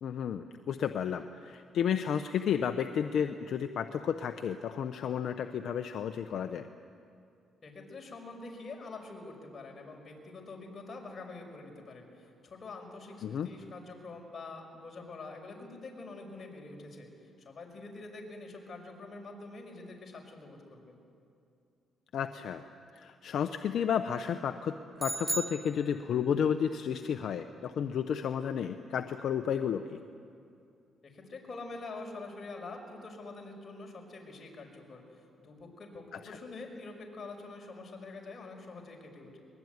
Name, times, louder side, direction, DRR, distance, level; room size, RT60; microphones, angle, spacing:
voice 1, 0.0-6.7 13.2-13.5 22.1-22.6 22.9-24.7 25.0-30.0 36.2-36.4, left 8 dB, 65° left, 8 dB, 0.9 m, -32 dB
voice 2, 7.6-20.9 31.0-39.4, left 3 dB, 40° left, 1 dB, 5.8 m, -46 dB
sound 1, 25.0-26.4, right 2 dB, 15° right, 0.5 m, -36 dB
23.0 x 21.5 x 9.6 m, 2.4 s
cardioid pair, 90°, 0 cm